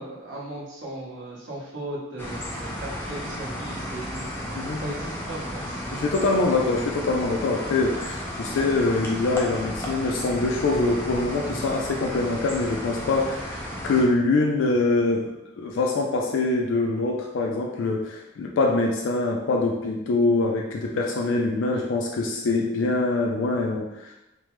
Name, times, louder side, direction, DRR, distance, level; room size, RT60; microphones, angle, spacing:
voice 1, 0.0-4.3 4.8-6.1 21.6-21.9, right 1 dB, 75° right, -6 dB, 1.0 m, -37 dB
sound 1, 2.2-14.0, equal, 10° left, 0.4 m, -33 dB
voice 2, 5.9-24.1, left 3 dB, 85° left, 0 dB, 0.4 m, -24 dB
3.2 x 2.1 x 3.0 m, 0.93 s
head